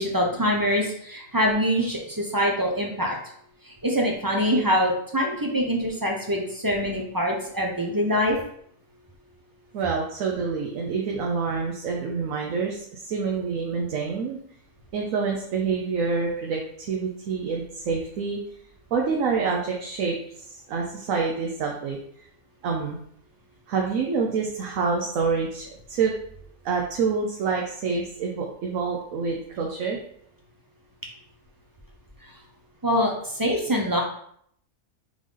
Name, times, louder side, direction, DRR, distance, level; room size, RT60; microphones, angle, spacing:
voice 1, 0.0-3.2 3.6-8.4 32.8-34.0, equal, 30° right, 0 dB, 0.3 m, -24 dB
voice 2, 9.7-14.4 14.9-18.4 18.9-20.2 20.4-22.0 22.6-23.0 23.7-26.1 26.6-30.0, right 5 dB, 80° right, -1 dB, 1.1 m, -27 dB
3.8 x 3.7 x 3.2 m, 0.66 s
omnidirectional pair, 1.4 m